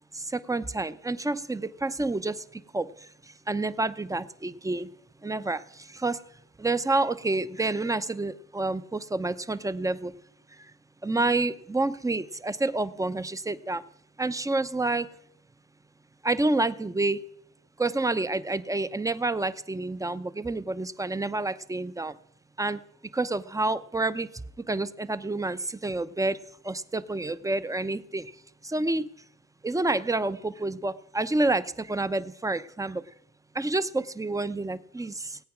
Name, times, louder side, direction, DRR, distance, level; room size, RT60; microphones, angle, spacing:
voice 1, 0.1-2.4 2.7-2.9 3.5-4.9 5.2-5.6 6.0-6.2 6.6-10.1 11.0-13.8 14.2-15.1 16.2-17.2 17.8-22.1 22.6-22.8 23.1-24.3 24.7-26.4 26.6-28.3 28.6-29.0 29.6-33.0 33.6-35.4, right 2 dB, 10° right, 14 dB, 0.7 m, -28 dB
18.0 x 8.5 x 6.0 m, 0.72 s
cardioid pair, 70°, 29 cm